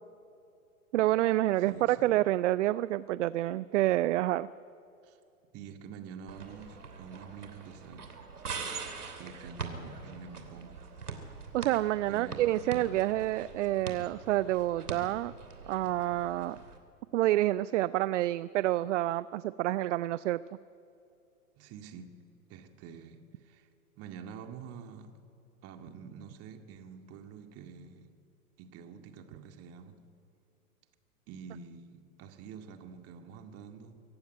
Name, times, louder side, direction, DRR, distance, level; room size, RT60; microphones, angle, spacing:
voice 1, 0.9-4.5 11.5-15.3 15.7-16.6 17.1-20.4, right 15 dB, 55° right, 0.5 m, -28 dB
voice 2, 1.6-2.1 5.0-5.2 5.5-8.2 9.2-10.8 12.1-12.7 21.6-22.2 22.5-23.7 24.0-25.1 25.6-28.1 28.6-30.0 31.3-34.0, right 6 dB, 30° right, 2.1 m, -47 dB
sound 1, 6.3-16.8, right 5 dB, 85° right, 3.1 m, -43 dB
24.5 x 15.0 x 9.1 m
hypercardioid pair, 115°, 44 cm